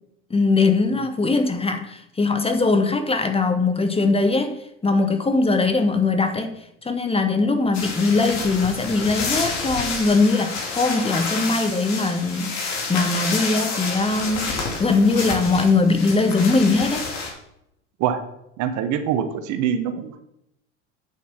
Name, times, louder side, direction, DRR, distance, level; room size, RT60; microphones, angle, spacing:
voice 1, 0.3-6.5 6.8-12.5 12.9-14.5 14.8-17.1, left 3 dB, 15° left, 8 dB, 1.2 m, -21 dB
sound 1, 7.7-17.3, left 4 dB, 50° left, 3.2 m, -29 dB
voice 2, 18.6-20.2, right 8 dB, 50° right, 9 dB, 1.4 m, -24 dB
8.6 x 7.2 x 6.0 m, 0.81 s
hypercardioid pair, 70°, 36 cm